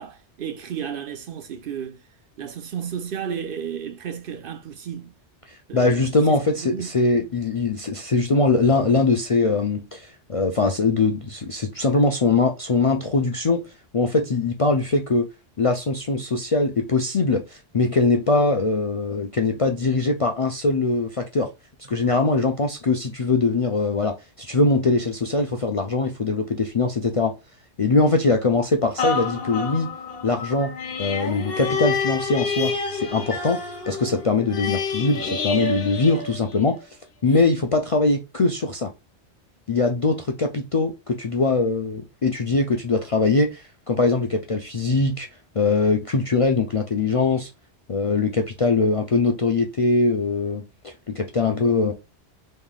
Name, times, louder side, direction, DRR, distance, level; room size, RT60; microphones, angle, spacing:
voice 1, 0.0-2.0 2.4-5.1 5.7-6.9, right 8 dB, 60° right, 0.7 m, -33 dB
voice 2, 5.5-13.6 13.9-15.3 15.6-21.5 21.9-27.3 27.8-29.9 30.2-30.7 31.0-33.6 33.9-36.7 37.2-38.9 39.7-45.3 45.6-47.5 47.9-51.9, left 3 dB, 45° left, 0.4 m, -22 dB
sound 1, 29.0-36.8 37.3-37.4, left 4 dB, 60° left, 1.0 m, -28 dB
3.7 x 3.2 x 2.2 m
omnidirectional pair, 1.1 m